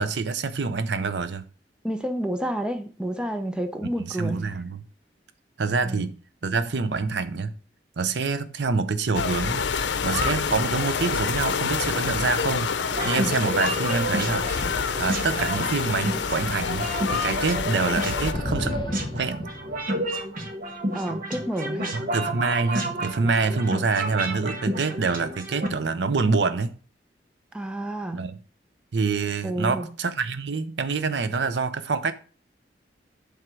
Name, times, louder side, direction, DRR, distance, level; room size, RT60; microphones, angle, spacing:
voice 1, 0.0-1.4 4.0-4.8 5.6-6.1 6.4-7.5 8.0-9.6 10.0-12.7 13.0-18.7 19.1-19.4 21.9-26.7 28.1-28.4 28.9-32.1, right 4 dB, 70° right, 0.6 m, -26 dB
voice 2, 1.8-4.4 5.8-6.1 20.9-22.0 27.5-28.3 29.4-29.9, right 1 dB, 5° right, 0.7 m, -30 dB
sound 1, 9.1-18.3, left 5 dB, 90° left, 0.6 m, -27 dB
sound 2, 12.9-25.7, right 1 dB, 50° right, 1.3 m, -31 dB
sound 3, 18.3-20.3, left 1 dB, 25° left, 0.7 m, -32 dB
7.7 x 3.6 x 6.1 m
head